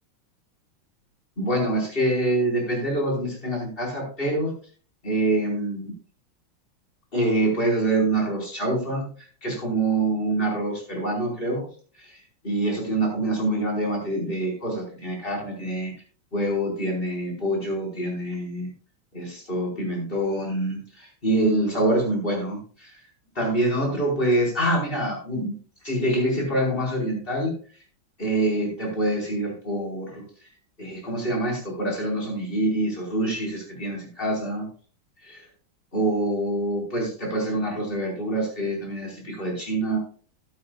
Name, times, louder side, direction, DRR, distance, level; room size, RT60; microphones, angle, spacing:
voice 1, 1.4-4.5 5.0-5.9 7.1-11.7 12.0-12.2 12.4-15.9 16.3-18.7 19.1-23.0 23.3-25.5 25.8-27.5 28.2-30.2 30.8-34.6 35.2-35.4 35.9-40.0, right 1 dB, 25° left, -2 dB, 4.7 m, -25 dB
14.0 x 11.5 x 2.3 m, 0.43 s
omnidirectional pair, 2.3 m